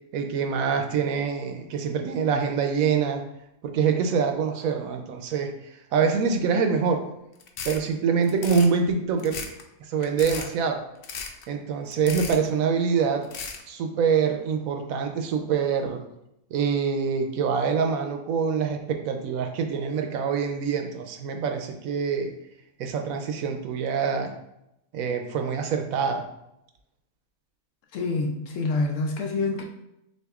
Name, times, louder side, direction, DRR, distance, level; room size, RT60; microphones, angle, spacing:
voice 1, 0.1-3.2 3.6-7.0 7.6-9.4 9.8-10.8 11.5-13.2 13.7-16.0 16.5-22.3 22.8-24.3 24.9-26.3, right 6 dB, 75° right, 5 dB, 0.9 m, -25 dB
sound 1, 7.4-7.8 8.2-8.7 9.2-9.6 10.0-10.5 11.0-11.4 11.9-12.5 13.2-13.6, left 5 dB, 85° left, 0.5 m, -35 dB
voice 2, 27.9-29.6, left 3 dB, 70° left, 2 dB, 0.8 m, -26 dB
6.3 x 2.5 x 2.4 m, 0.83 s
omnidirectional pair, 1.5 m